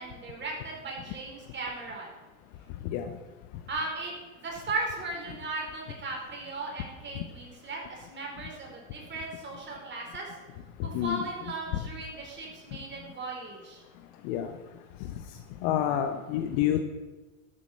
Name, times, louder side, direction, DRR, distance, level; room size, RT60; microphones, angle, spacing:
voice 1, 0.0-2.1 3.7-10.3 10.8-13.8, right 2 dB, 25° right, -1 dB, 4.5 m, -37 dB
voice 2, 10.8-11.2 14.2-14.5 15.6-16.8, left 11 dB, 50° left, 7 dB, 1.1 m, -28 dB
12.5 x 8.1 x 6.4 m, 1.2 s
hypercardioid pair, 95°, 43 cm